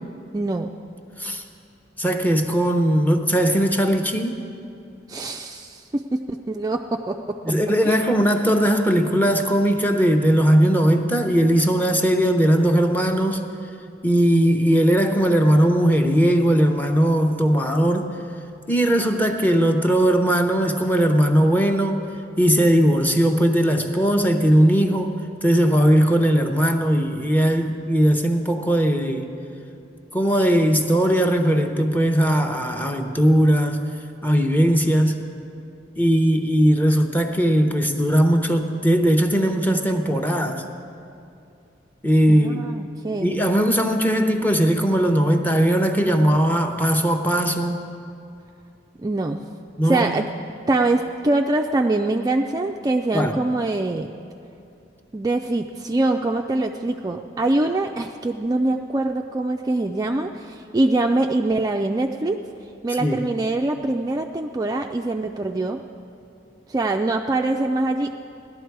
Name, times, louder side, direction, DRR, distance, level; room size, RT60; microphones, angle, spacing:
voice 1, 0.3-0.7 5.1-7.5 7.8-8.0 42.3-43.4 49.0-49.4 49.8-50.2 50.7-54.1 55.1-62.4 62.8-65.8 66.7-68.1, right 2 dB, 20° right, 4 dB, 0.3 m, -24 dB
voice 2, 2.0-4.4 7.4-13.4 14.0-18.1 18.7-22.1 22.4-25.2 25.4-29.3 30.1-33.8 34.2-35.2 36.0-40.6 42.0-42.6 43.2-47.9 49.8-50.1 53.1-53.4 63.0-63.2, equal, 10° left, 5 dB, 0.7 m, -19 dB
16.5 x 11.5 x 4.6 m, 2.7 s
head